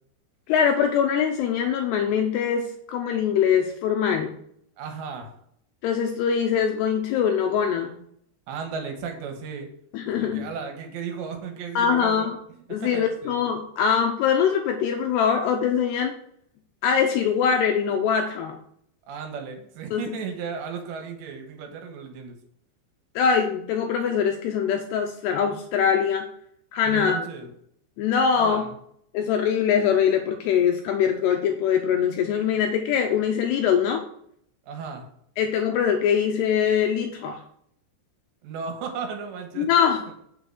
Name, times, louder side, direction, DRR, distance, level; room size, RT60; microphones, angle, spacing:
voice 1, 0.5-4.3 5.8-8.0 9.9-10.5 11.8-12.4 12.7-16.1 16.8-18.6 19.9-20.2 23.2-26.3 26.7-27.2 28.0-28.6 29.1-34.0 35.4-37.4 39.6-40.0, left 7 dB, 80° left, 4 dB, 2.5 m, -23 dB
voice 2, 4.8-5.3 8.5-9.7 10.1-12.3 12.7-13.4 19.1-22.4 26.9-27.5 28.3-28.7 34.7-35.0 38.4-39.7, right 6 dB, 75° right, 4 dB, 3.3 m, -35 dB
8.0 x 6.8 x 4.6 m, 0.68 s
omnidirectional pair, 5.4 m